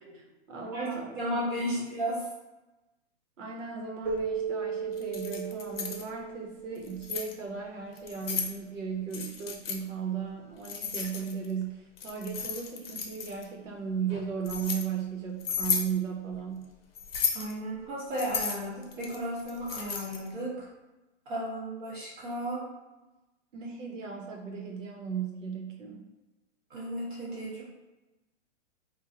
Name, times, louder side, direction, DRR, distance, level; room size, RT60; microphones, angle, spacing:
voice 1, 0.1-1.8 3.4-16.7 23.5-26.0, right 6 dB, 90° right, 1 dB, 1.1 m, -36 dB
voice 2, 0.7-2.3 17.3-20.7 21.2-22.7 26.7-27.6, equal, 40° right, -6 dB, 1.4 m, -34 dB
Keyboard (musical), 4.1-7.3, right 5 dB, 20° right, 0.5 m, -35 dB
Keys jangling, 5.0-6.0 6.8-7.3 8.0-8.5 9.1-9.8 10.6-11.5 12.0-13.4 14.1-14.8 15.4-15.9 17.0-17.5 18.1-20.3, left 6 dB, 50° left, 0.7 m, -33 dB
2.9 x 2.4 x 3.9 m, 1.1 s
hypercardioid pair, 175°, 37 cm